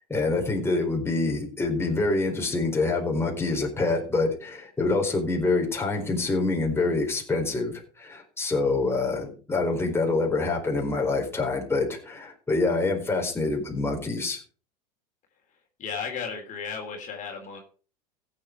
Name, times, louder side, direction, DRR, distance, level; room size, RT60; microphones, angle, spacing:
voice 1, 0.1-14.4, left 3 dB, 10° left, 1 dB, 4.4 m, -26 dB
voice 2, 15.8-17.6, left 6 dB, 40° left, 1 dB, 3.6 m, -34 dB
15.5 x 8.1 x 4.7 m, 0.38 s
hypercardioid pair, 90°, 20 cm